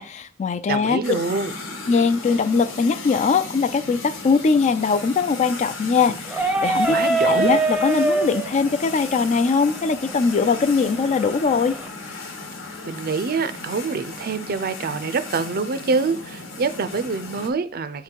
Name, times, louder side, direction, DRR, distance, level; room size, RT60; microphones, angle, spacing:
voice 1, 0.0-1.0 1.9-11.8, left 5 dB, 35° left, 0.3 m, -21 dB
voice 2, 0.7-1.5 6.9-7.5 12.8-18.0, right 4 dB, 45° right, 0.5 m, -25 dB
sound 1, 1.0-17.5, left 3 dB, 70° left, 1.2 m, -36 dB
sound 2, 6.3-11.9, right 2 dB, 5° right, 0.6 m, -25 dB
8.2 x 3.8 x 4.5 m
head